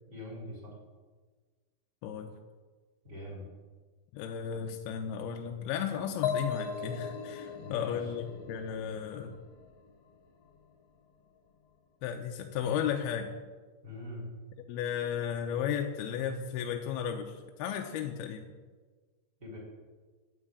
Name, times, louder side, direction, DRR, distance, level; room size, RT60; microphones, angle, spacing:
voice 1, 0.1-0.7 3.0-3.5 7.6-8.0 13.8-14.2 19.4-19.6, left 1 dB, 20° right, -3 dB, 4.4 m, -43 dB
voice 2, 2.0-2.3 4.1-9.4 12.0-13.3 14.7-18.5, left 8 dB, 85° left, 3 dB, 2.7 m, -34 dB
sound 1, 6.2-9.9, left 6 dB, 50° left, 2.3 m, -37 dB
11.0 x 9.0 x 8.6 m, 1.4 s
omnidirectional pair, 4.4 m